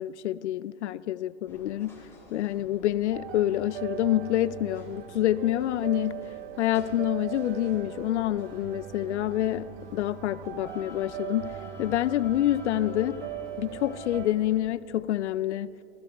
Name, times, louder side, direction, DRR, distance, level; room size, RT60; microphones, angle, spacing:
voice 1, 0.0-2.0 2.3-6.2 6.6-9.7 9.9-13.2 13.6-15.7, left 13 dB, 90° left, 0.5 m, -27 dB
sound 1, 1.5-14.5, left 2 dB, 10° left, 3.7 m, -49 dB
sound 2, 3.1-14.3, right 14 dB, 45° right, 0.6 m, -40 dB
20.5 x 15.0 x 3.4 m
hypercardioid pair, 130°, 34 cm